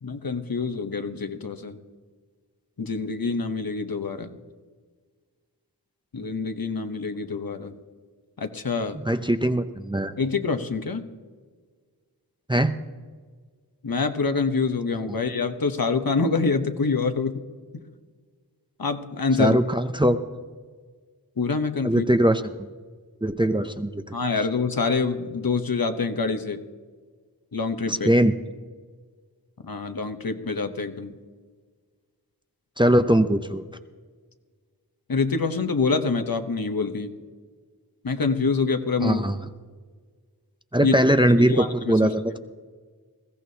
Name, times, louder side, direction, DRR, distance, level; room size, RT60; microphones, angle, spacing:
voice 1, 0.0-1.8 2.8-4.4 6.1-7.7 8.4-9.0 10.2-11.0 13.8-17.4 17.7-17.8 18.8-19.6 21.4-22.0 24.1-26.6 27.5-28.1 29.6-31.2 35.1-37.1 38.0-39.2 40.8-41.0 41.5-42.1, left 4 dB, 60° left, 7 dB, 1.0 m, -26 dB
voice 2, 9.0-10.1 12.5-12.7 19.4-20.2 21.8-22.7 23.2-24.0 27.9-28.3 32.8-33.6 39.0-39.4 40.7-42.4, right 1 dB, 10° right, 8 dB, 0.6 m, -21 dB
20.5 x 15.5 x 2.8 m, 1.5 s
wide cardioid pair, 60°, 39 cm